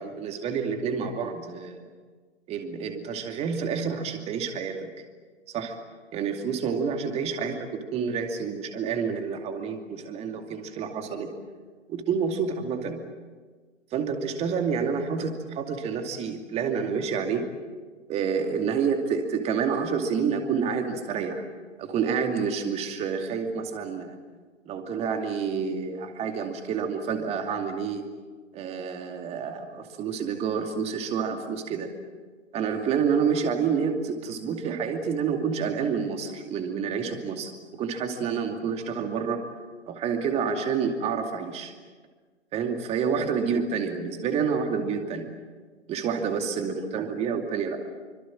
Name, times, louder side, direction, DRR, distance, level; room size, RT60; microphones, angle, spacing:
voice 1, 0.0-1.9 2.5-4.9 5.5-5.7 6.1-7.6 7.9-11.3 11.9-13.0 13.9-17.5 18.1-21.4 21.8-24.2 24.7-28.1 28.5-31.9 32.5-39.4 39.9-41.7 42.5-45.3 45.9-47.8, right 6 dB, 15° right, 5 dB, 2.5 m, -28 dB
27.5 x 25.0 x 7.6 m, 1.4 s
figure-of-eight pair, 120°, 37 cm